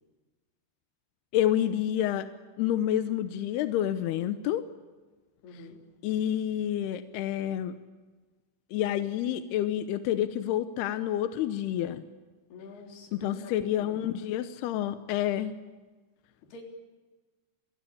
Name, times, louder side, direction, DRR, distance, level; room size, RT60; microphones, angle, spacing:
voice 1, 1.3-2.3 2.6-4.6 6.0-7.7 8.7-12.0 13.1-15.5, left 11 dB, 75° left, 11 dB, 2.5 m, -28 dB
voice 2, 4.1-4.5 5.4-5.8 12.5-14.0 16.5-16.6, left 3 dB, 60° left, 2 dB, 5.7 m, -47 dB
28.0 x 20.5 x 8.5 m, 1.3 s
omnidirectional pair, 5.4 m